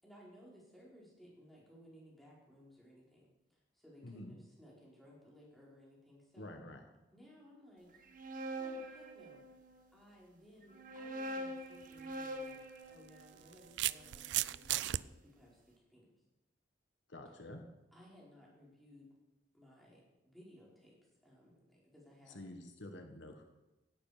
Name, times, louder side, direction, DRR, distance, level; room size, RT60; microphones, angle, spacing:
voice 1, 0.0-6.5 7.1-8.1 8.6-9.4 9.9-12.6 12.9-15.5 15.9-16.0 17.9-19.1 19.5-21.0 21.2-22.4, equal, ahead, -5 dB, 4.7 m, -60 dB
voice 2, 4.0-4.4 6.4-6.8 17.1-17.6 22.3-23.4, left 1 dB, 75° left, 5 dB, 1.6 m, -49 dB
sound 1, 7.9-9.8 10.6-14.8, right 1 dB, 45° right, 1.5 m, -45 dB
sound 2, 11.8-12.0 13.1-15.0, right 14 dB, 65° right, 0.3 m, -35 dB
16.5 x 11.5 x 5.1 m, 1.0 s
head